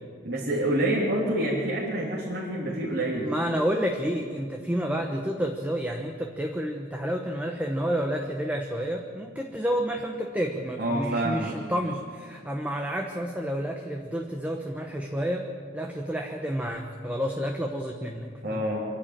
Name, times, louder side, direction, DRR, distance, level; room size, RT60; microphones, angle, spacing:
voice 1, 0.2-3.3 10.8-11.6 18.4-18.8, right 1 dB, 50° right, -5 dB, 3.4 m, -27 dB
voice 2, 3.1-18.6, equal, 5° right, 2 dB, 1.1 m, -30 dB
25.5 x 11.5 x 9.0 m, 2.1 s
head